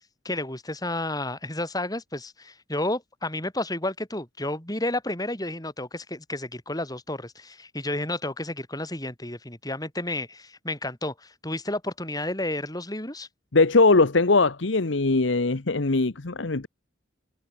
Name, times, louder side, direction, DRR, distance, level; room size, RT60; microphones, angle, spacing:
voice 1, 0.2-13.3, left 1 dB, 20° left, 7.4 m, -31 dB
voice 2, 13.5-16.7, left 3 dB, 80° left, 1.1 m, -20 dB
head